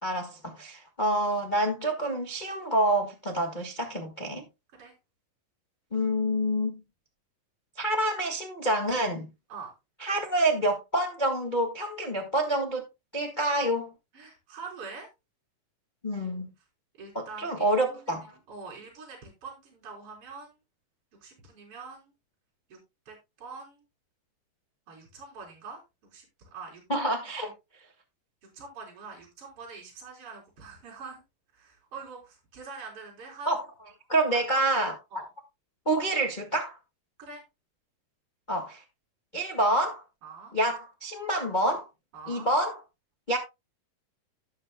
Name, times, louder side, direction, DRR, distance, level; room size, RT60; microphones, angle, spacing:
voice 1, 0.0-4.4 5.9-6.7 7.8-9.3 10.0-12.8 13.1-13.9 16.0-16.5 17.1-18.3 26.9-27.5 33.4-33.6 34.1-34.9 35.8-36.8 38.5-38.8 39.3-40.0 40.5-41.8 42.3-42.8 43.3-43.4, right 1 dB, 50° left, 0.5 m, -27 dB
voice 2, 14.1-15.1 17.0-18.2 18.5-20.6 21.2-22.1 22.7-22.8 23.1-23.8 24.9-26.3 26.5-26.8 28.5-31.2 31.5-33.5 34.1-34.6 35.1-35.3 37.2-37.4 40.2-40.5 42.1-42.5, right 4 dB, 40° right, 4.6 m, -44 dB
17.0 x 6.6 x 2.2 m
omnidirectional pair, 3.9 m